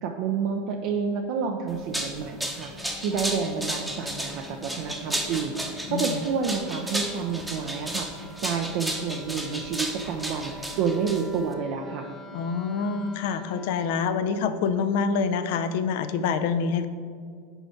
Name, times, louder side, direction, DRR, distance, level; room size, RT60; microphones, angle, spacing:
voice 1, 0.0-12.1, right 6 dB, 60° right, 2 dB, 0.5 m, -29 dB
Wind instrument woodwind instrument, 1.3-14.2, left 1 dB, 25° left, 0.7 m, -47 dB
sound 1, 1.7-11.5, right 1 dB, 5° right, 0.8 m, -33 dB
voice 2, 12.3-16.9, left 5 dB, 65° left, 10 dB, 0.5 m, -26 dB
5.5 x 4.3 x 5.7 m, 2.1 s
hypercardioid pair, 105°, 0 cm